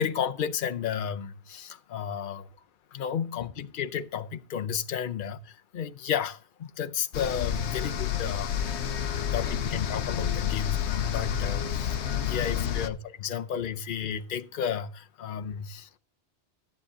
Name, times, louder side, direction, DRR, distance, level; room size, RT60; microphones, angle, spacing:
voice 1, 0.0-2.5 2.9-16.0, left 8 dB, 55° left, 0.8 m, -33 dB
sound 1, 7.1-12.9, left 9 dB, 80° left, 1.0 m, -29 dB
14.0 x 8.3 x 3.6 m
omnidirectional pair, 1.1 m